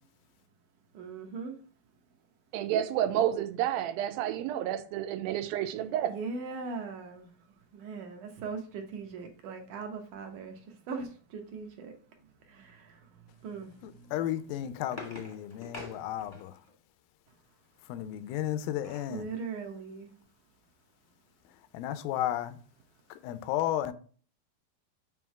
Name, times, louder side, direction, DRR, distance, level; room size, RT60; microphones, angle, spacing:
voice 1, 0.9-1.6 6.1-7.3 7.7-11.9 12.5-13.0 13.4-14.0 19.1-20.2, right 4 dB, 70° right, 2.1 m, -40 dB
voice 2, 2.5-6.1, right 11 dB, 90° right, 2.4 m, -30 dB
voice 3, 13.8-16.5 17.9-19.3 21.7-22.6 23.1-23.9, left 12 dB, 85° left, 2.3 m, -33 dB
sound 1, 14.6-16.7 18.3-19.2 19.7-19.8 20.0-20.3, left 2 dB, 25° left, 0.8 m, -47 dB
7.1 x 3.0 x 5.8 m
omnidirectional pair, 4.2 m